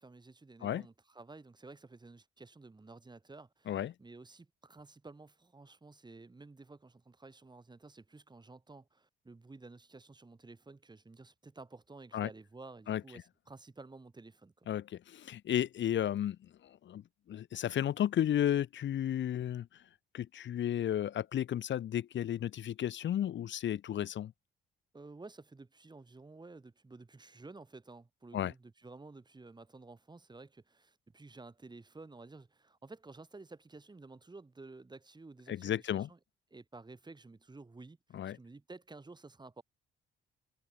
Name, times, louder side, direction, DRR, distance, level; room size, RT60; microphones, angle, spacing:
voice 1, 0.0-14.7 24.9-36.2 36.5-39.6, right 3 dB, 20° right, 7.8 m, -53 dB
voice 2, 14.7-16.4 16.8-17.0 17.3-19.7 20.1-24.3 28.3-28.5 35.5-36.1 38.1-38.4, left 11 dB, 65° left, 2.8 m, -33 dB
cardioid pair, 90°, 20 cm